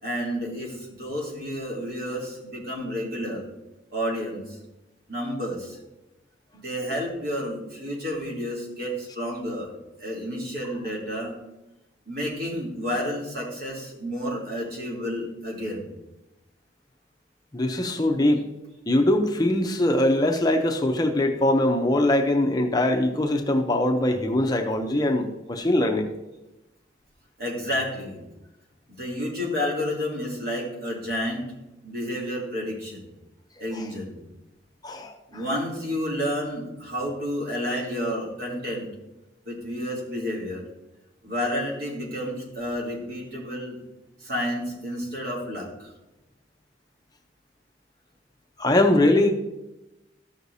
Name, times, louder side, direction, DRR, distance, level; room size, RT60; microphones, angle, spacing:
voice 1, 0.0-3.4 3.9-4.6 5.1-5.8 6.5-9.7 10.0-11.3 12.1-15.9 27.4-28.2 28.9-31.5 31.8-33.0 33.6-34.2 35.3-38.9 39.4-40.6 41.2-43.8 44.2-45.9, equal, 55° right, -4 dB, 3.2 m, -30 dB
voice 2, 17.5-18.5 18.9-26.1 33.7-33.9 34.8-35.4 48.6-49.3, left 1 dB, 20° left, 3 dB, 0.7 m, -22 dB
13.5 x 6.4 x 2.7 m, 0.97 s
head